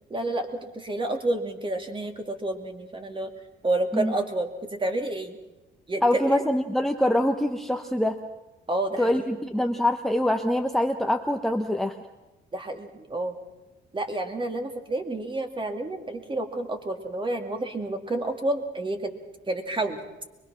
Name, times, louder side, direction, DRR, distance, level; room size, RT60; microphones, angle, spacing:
voice 1, 0.1-3.3 3.6-5.4 5.9-6.4 8.7-9.2 12.5-13.4 13.9-19.1 19.5-20.0, right 2 dB, 25° right, 5 dB, 2.3 m, -29 dB
voice 2, 6.0-8.2 9.0-11.9, left 1 dB, ahead, 7 dB, 1.0 m, -24 dB
24.0 x 21.0 x 6.1 m, 1.0 s
cardioid pair, 90°, 20 cm